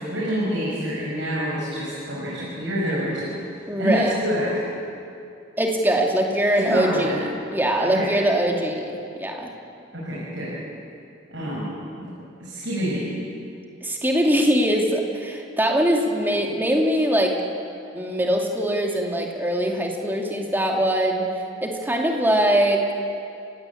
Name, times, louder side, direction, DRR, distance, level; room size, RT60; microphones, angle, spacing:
voice 1, 0.0-3.4 3.8-4.6 6.6-7.2 7.8-8.1 9.9-10.6 11.3-12.1 12.4-13.1, equal, 70° right, -6 dB, 6.5 m, -27 dB
voice 2, 3.7-4.1 5.6-9.5 13.8-17.3 17.9-21.3 21.6-22.8, right 1 dB, 10° right, 0 dB, 2.5 m, -22 dB
29.5 x 17.5 x 8.6 m, 2.5 s
head